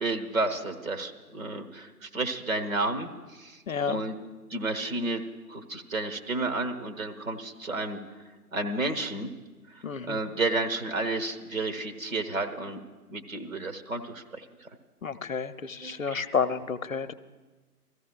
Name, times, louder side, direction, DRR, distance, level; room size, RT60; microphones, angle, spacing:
voice 1, 0.0-3.6 3.9-4.2 4.5-5.2 5.5-8.0 8.5-9.3 10.1-12.8 13.1-14.7 15.8-16.4, right 2 dB, 60° right, 4 dB, 1.3 m, -31 dB
voice 2, 3.7-4.0 9.8-10.2 15.0-17.1, left 6 dB, 60° left, 12 dB, 0.6 m, -30 dB
24.0 x 14.5 x 2.3 m, 1.3 s
figure-of-eight pair, 150°, 46 cm